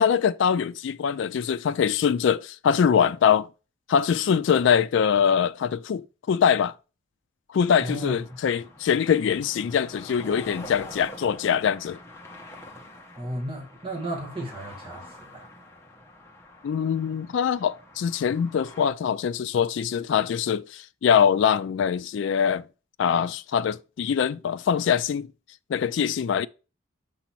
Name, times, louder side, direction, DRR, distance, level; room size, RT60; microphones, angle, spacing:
voice 1, 0.0-3.5 3.9-6.7 7.5-12.0 16.6-22.6 23.0-25.3 25.7-26.5, left 7 dB, 65° left, 0.3 m, -23 dB
sound 1, 7.6-18.9, left 1 dB, 15° left, 0.8 m, -46 dB
voice 2, 7.8-8.2 8.5-8.6 13.2-15.5, right 1 dB, 25° right, 1.2 m, -34 dB
6.8 x 2.9 x 5.8 m
head